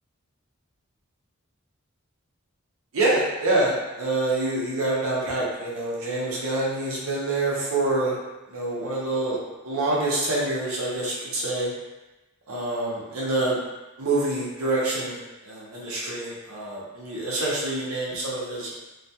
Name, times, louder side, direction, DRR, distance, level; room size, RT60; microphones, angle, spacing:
voice 1, 2.9-8.2 8.5-9.4 9.6-11.7 12.5-13.6 14.0-18.7, right 2 dB, 80° right, -6 dB, 0.6 m, -26 dB
2.3 x 2.2 x 2.7 m, 1.1 s
head